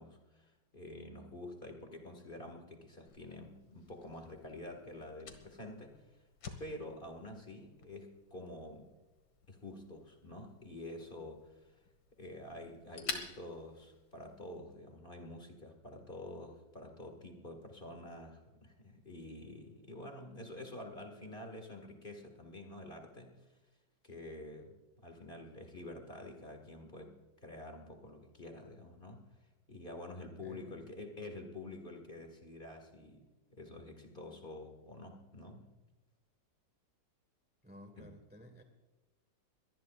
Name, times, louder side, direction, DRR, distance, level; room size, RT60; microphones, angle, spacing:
voice 1, 0.0-6.2 6.6-8.9 9.5-11.8 12.2-23.6 24.0-29.3 29.7-35.7 38.0-38.1, left 1 dB, 30° left, 3 dB, 1.9 m, -48 dB
Fire, 3.1-14.6, left 4 dB, 85° left, 2.3 m, -50 dB
voice 2, 30.4-30.9 37.6-38.6, equal, 5° right, 5 dB, 1.1 m, -54 dB
23.5 x 19.0 x 2.5 m, 1.1 s
omnidirectional pair, 2.1 m